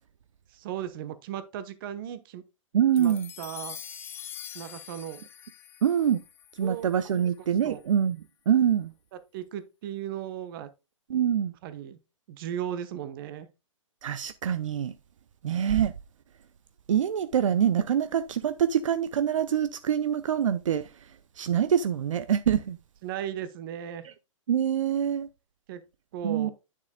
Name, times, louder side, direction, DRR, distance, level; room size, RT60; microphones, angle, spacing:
voice 1, 0.5-2.4 3.0-3.8 4.5-5.2 6.6-6.9 7.6-7.8 9.1-10.7 11.6-12.0 12.3-13.5 23.0-24.1 25.7-25.8 26.1-26.5, right 10 dB, 40° right, 1.1 m, -36 dB
voice 2, 2.7-3.3 5.8-6.2 6.6-8.2 8.5-8.9 11.1-11.5 14.0-14.9 15.4-15.9 16.9-20.9 21.4-22.8 24.0-24.1 24.5-25.3 26.2-26.5, right 9 dB, 70° right, 0.6 m, -25 dB
sound 1, 3.0-7.5, left 9 dB, 15° left, 0.5 m, -44 dB
9.4 x 6.8 x 2.2 m
hypercardioid pair, 140°, 17 cm